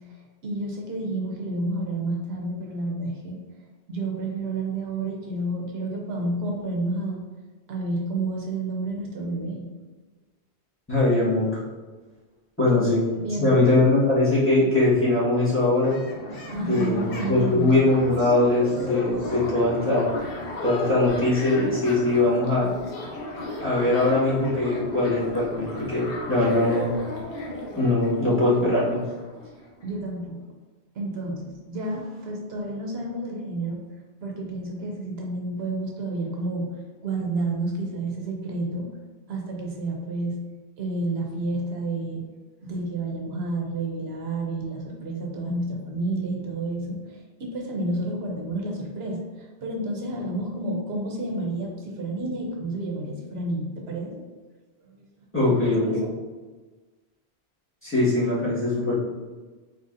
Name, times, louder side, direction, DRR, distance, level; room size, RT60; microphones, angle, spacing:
voice 1, 0.1-3.4 3.9-7.2 7.7-9.7 12.7-12.8 13.1-13.5 16.5-17.7 29.4-29.5 29.8-30.4 31.0-33.8 34.2-38.9 39.3-40.4 40.8-42.2 42.6-54.2 54.8-55.1 55.9-56.1, right 2 dB, 75° right, 0 dB, 1.0 m, -30 dB
voice 2, 10.9-11.6 12.6-13.0 13.4-16.0 16.7-20.1 20.6-22.7 23.6-26.9 27.8-29.0 55.3-56.0 57.8-58.9, left 2 dB, 10° left, -9 dB, 1.5 m, -21 dB
sound 1, 15.3-29.9, left 2 dB, 65° left, 1.0 m, -35 dB
4.2 x 4.0 x 2.5 m, 1.3 s
omnidirectional pair, 1.1 m